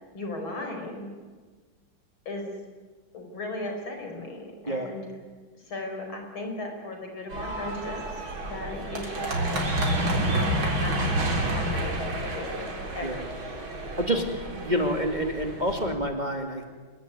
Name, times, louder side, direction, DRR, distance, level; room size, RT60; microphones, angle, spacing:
voice 1, 0.1-1.1 2.3-2.5 3.1-5.1 5.5-9.7 10.2-10.5 10.8-11.0 11.4-13.2, left 2 dB, 75° left, 3 dB, 5.7 m, -37 dB
sound 1, 7.3-15.9, right 1 dB, 70° right, 4.5 m, -29 dB
voice 2, 14.5-16.6, equal, 20° right, 3 dB, 2.3 m, -27 dB
26.5 x 22.0 x 9.6 m, 1.4 s
omnidirectional pair, 2.2 m